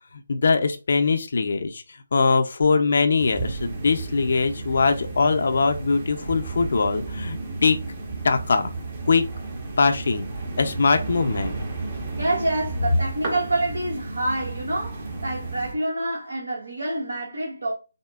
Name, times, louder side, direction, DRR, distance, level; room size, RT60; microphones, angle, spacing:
voice 1, 0.3-1.8 2.1-7.8 8.2-8.7 9.1-9.3 9.8-10.2 10.6-11.6, left 4 dB, 55° left, 0.5 m, -21 dB
sound 1, 3.2-15.7, right 3 dB, 35° right, 1.1 m, -33 dB
voice 2, 12.2-17.7, right 1 dB, 75° right, 1.1 m, -27 dB
6.2 x 2.1 x 2.4 m
figure-of-eight pair, 150°, 0 cm